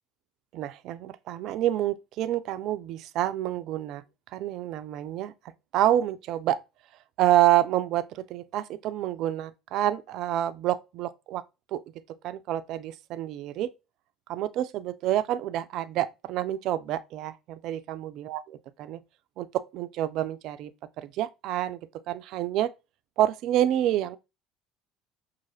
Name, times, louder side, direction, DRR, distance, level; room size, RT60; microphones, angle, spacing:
voice 1, 0.5-4.0 4.3-5.3 5.7-6.6 7.2-11.4 11.7-11.8 12.2-13.7 14.3-19.0 19.4-20.7 21.0-21.8 22.1-22.7 23.2-24.2, right 13 dB, 55° right, 0.3 m, -28 dB
5.8 x 2.4 x 2.7 m
figure-of-eight pair, 60°, 0 cm